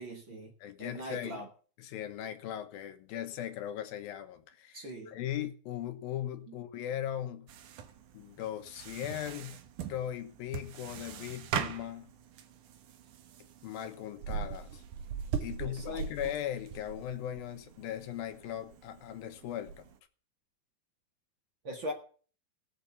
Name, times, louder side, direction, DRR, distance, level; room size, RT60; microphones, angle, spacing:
voice 1, 0.0-0.5 0.8-1.5 4.7-5.1 6.5-6.6 15.7-16.0 21.6-21.9, equal, 40° right, 2.1 m, -41 dB
voice 2, 0.6-1.5 1.8-7.5 8.1-9.6 9.9-12.1 13.6-14.8 15.4-19.9, left 11 dB, 85° left, 3.1 m, -38 dB
sound 1, 7.5-20.0, right 7 dB, 65° right, 2.5 m, -41 dB
17.0 x 6.8 x 7.1 m
omnidirectional pair, 4.2 m